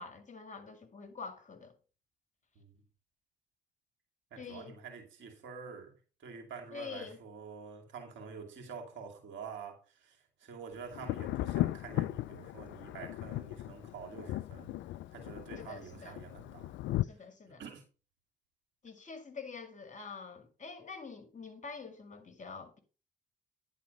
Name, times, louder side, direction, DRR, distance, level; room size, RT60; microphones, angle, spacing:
voice 1, 0.0-1.7 4.4-4.8 6.7-7.2 15.5-16.2 17.0-17.6 18.8-22.8, left 5 dB, 35° left, 2.1 m, -46 dB
voice 2, 4.3-14.7 15.1-16.8 17.0-17.8, right 6 dB, 65° right, 2.6 m, -48 dB
Thunder, 10.9-17.0, left 15 dB, 65° left, 0.4 m, -36 dB
10.0 x 4.3 x 5.4 m
hypercardioid pair, 50°, 21 cm